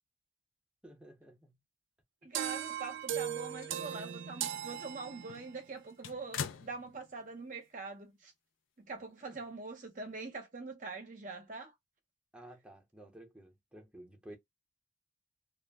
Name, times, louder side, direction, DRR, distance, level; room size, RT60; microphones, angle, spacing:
voice 1, 0.8-1.6 9.2-9.4 12.3-14.4, right 1 dB, 5° right, 0.7 m, -53 dB
voice 2, 2.2-8.3 8.8-11.7, right 3 dB, 40° right, 0.6 m, -44 dB
sound 1, 2.3-5.6, right 9 dB, 75° right, 0.3 m, -38 dB
sound 2, 3.0-4.2 4.6-4.7 5.2-7.4 7.7-7.8 9.0-9.1, left 7 dB, 90° left, 0.4 m, -45 dB
2.3 x 2.1 x 3.3 m
head